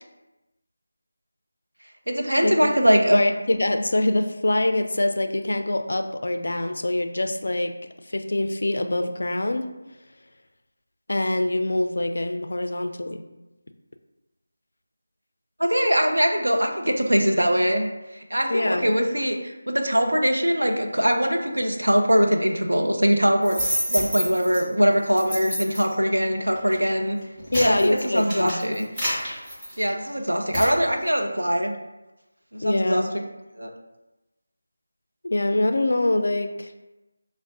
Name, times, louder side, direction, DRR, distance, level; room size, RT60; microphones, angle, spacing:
voice 1, 2.1-3.2 15.6-27.2 27.6-28.9 29.8-31.7 32.5-33.2 33.6-33.7, equal, 75° right, 3 dB, 0.5 m, -22 dB
voice 2, 3.1-7.7 8.1-9.7 11.1-13.2 18.5-18.9 27.5-28.6 32.6-33.1 35.2-36.7, left 1 dB, 55° left, 7 dB, 0.3 m, -24 dB
sound 1, 23.4-24.6 25.2-25.9 26.6-26.8 27.2-30.1 30.5-30.7, equal, 10° right, 1.0 m, -28 dB
5.7 x 2.0 x 2.6 m, 1.0 s
figure-of-eight pair, 160°, 0 cm